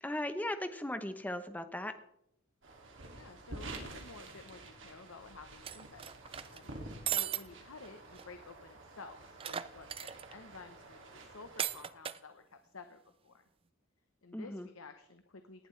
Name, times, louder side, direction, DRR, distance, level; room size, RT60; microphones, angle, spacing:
voice 1, 0.0-1.9 14.3-14.7, left 1 dB, 10° left, 9 dB, 0.8 m, -37 dB
sound 1, 2.6-11.8, right 2 dB, 65° right, 2.5 m, -50 dB
voice 2, 3.1-13.4 14.2-15.7, left 3 dB, 90° left, 7 dB, 1.0 m, -53 dB
sound 2, 5.6-6.6 7.1-7.4 7.8-7.9 8.2-8.3 9.4-10.3 11.6-12.2, right 9 dB, 25° right, 0.4 m, -36 dB
18.5 x 11.0 x 3.3 m, 0.76 s
head